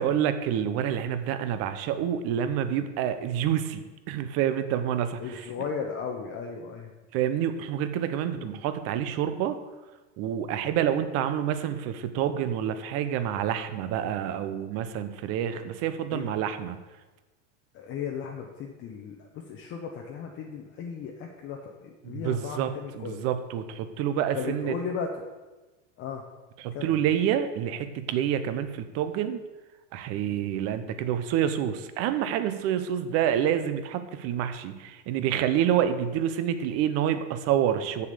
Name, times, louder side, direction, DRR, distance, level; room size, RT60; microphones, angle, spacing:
voice 1, 0.0-5.4 7.1-9.6 10.2-16.8 22.0-24.7 26.6-29.4 29.9-38.1, right 10 dB, 40° right, 10 dB, 0.8 m, -28 dB
voice 2, 5.2-6.9 8.4-8.6 10.6-10.8 15.5-15.6 16.1-16.3 17.7-23.2 24.3-25.3 26.0-26.2 26.7-27.0 30.2-30.4, left 6 dB, 30° left, 1 dB, 0.9 m, -36 dB
7.3 x 6.7 x 6.7 m, 1.2 s
supercardioid pair, 145°, 38 cm